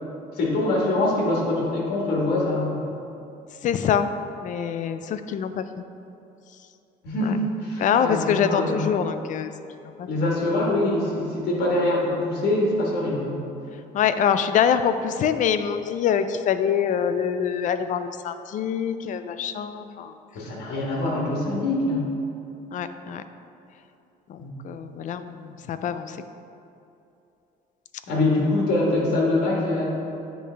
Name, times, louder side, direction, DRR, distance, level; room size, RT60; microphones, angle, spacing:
voice 1, 0.3-2.8 7.0-8.8 10.1-13.4 20.3-22.1 24.4-24.5 28.1-29.8, left 2 dB, 75° left, -3 dB, 1.4 m, -24 dB
voice 2, 3.6-4.1 4.4-5.7 7.2-7.3 7.8-9.5 10.0-10.1 13.9-20.1 22.7-23.2 24.3-24.4 24.6-26.2, left 8 dB, 50° left, 10 dB, 0.4 m, -24 dB
9.9 x 3.3 x 3.3 m, 2.7 s
cardioid pair, 110°, 17 cm